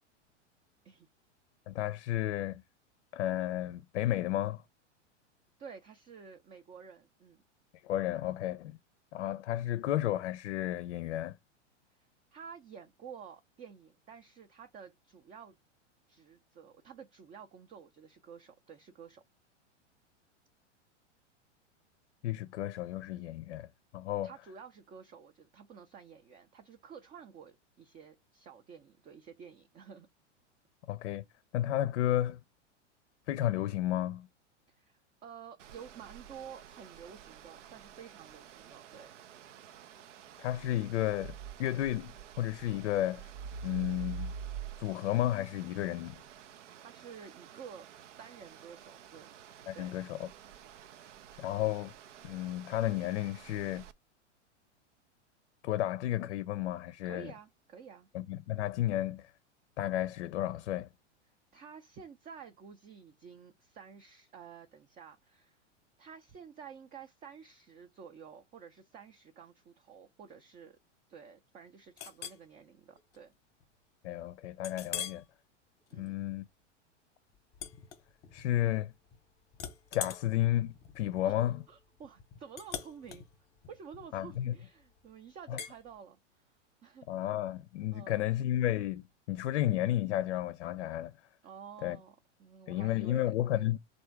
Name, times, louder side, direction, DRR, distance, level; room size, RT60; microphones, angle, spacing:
voice 1, 1.7-2.6 3.1-4.6 7.8-8.8 9.1-11.4 22.2-23.7 23.9-24.3 30.9-31.2 31.5-32.4 33.3-34.3 40.4-43.3 43.6-44.3 44.8-46.2 49.7-50.3 51.4-51.9 52.2-53.8 55.6-57.3 58.1-59.3 59.8-60.9 74.0-75.2 76.0-76.4 78.3-78.9 79.9-81.6 84.1-84.6 85.5-85.6 87.1-91.1 91.8-92.0 92.7-93.8, left 13 dB, 65° left, 0.5 m, -32 dB
voice 2, 5.6-7.4 12.3-15.6 16.1-19.2 24.2-30.1 34.7-39.1 46.6-47.9 48.2-49.3 49.7-50.0 57.0-58.1 61.5-65.6 66.0-70.8 71.1-73.3 75.9-76.2 81.2-83.3 83.7-86.5 86.8-87.1 87.9-88.3 91.4-93.8, right 7 dB, 20° right, 0.5 m, -51 dB
sound 1, 35.6-53.9, right 6 dB, 80° right, 0.6 m, -48 dB
Chink clink, 72.0-72.4 73.0-73.2 73.6-73.7 74.6-75.3 75.8-76.1 77.5-78.5 78.8-79.2 79.5-84.7 85.6-85.8, left 8 dB, 25° left, 0.8 m, -43 dB
3.4 x 2.7 x 4.4 m
hypercardioid pair, 105°, 36 cm